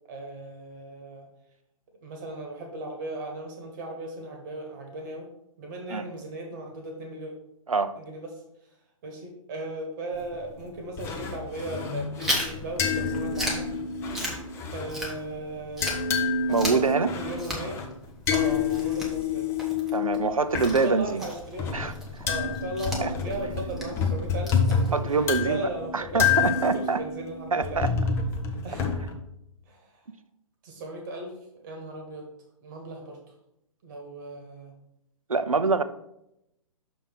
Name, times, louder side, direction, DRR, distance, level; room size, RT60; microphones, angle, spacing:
voice 1, 0.1-1.3 2.0-5.3 5.6-7.3 8.0-8.4 9.0-13.7 14.7-15.9 16.5-17.8 18.3-19.5 20.8-21.7 22.2-27.8 28.6-28.9 29.7-30.0 30.6-32.3 32.6-33.2 33.8-34.7, right 2 dB, 35° right, 2 dB, 1.3 m, -37 dB
sound 1, 10.1-10.6 11.0-15.3 15.6-20.8 21.3-29.1, left 5 dB, 15° left, 0.6 m, -28 dB
Chewing mastication, 12.2-15.5 15.8-25.2, equal, ahead, 1.1 m, -36 dB
voice 2, 16.5-17.1 19.9-21.2 21.7-21.9 23.0-23.1 24.9-25.6 25.9-27.0 27.5-27.9 35.3-35.8, right 4 dB, 80° right, 12 dB, 0.6 m, -25 dB
6.2 x 3.5 x 6.0 m, 0.81 s
figure-of-eight pair, 120°, 17 cm